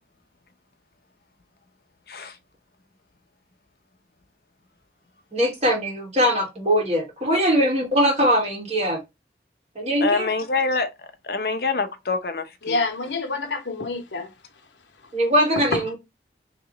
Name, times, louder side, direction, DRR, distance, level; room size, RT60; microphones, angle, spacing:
voice 1, 5.3-9.0 9.7-10.3 15.1-16.0, equal, 35° right, 1.5 m, -21 dB
voice 2, 10.0-10.9 11.2-12.8, left 4 dB, 55° left, 0.7 m, -25 dB
voice 3, 12.6-14.3 15.7-16.0, left 3 dB, 85° left, 0.9 m, -27 dB
3.1 x 3.0 x 3.7 m
head